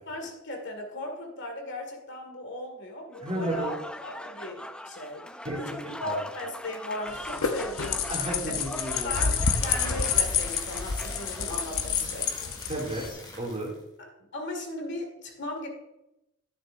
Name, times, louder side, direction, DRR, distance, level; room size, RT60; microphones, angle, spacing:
voice 1, 0.1-4.6 4.9-8.0 8.5-8.6 9.0-12.3 14.3-15.7, left 1 dB, 55° left, 3 dB, 1.9 m, -37 dB
Applause / Crowd, 3.1-12.0, left 1 dB, 5° left, 0.3 m, -41 dB
voice 2, 3.2-3.8 5.4-6.2 8.1-9.2 12.7-13.1 13.4-13.7, right 1 dB, 30° right, -2 dB, 2.5 m, -33 dB
sound 1, 7.1-13.1, left 6 dB, 70° left, 0.8 m, -28 dB
sound 2, 9.4-13.8, left 2 dB, 20° left, 1.8 m, -43 dB
11.0 x 9.7 x 2.6 m, 0.90 s
head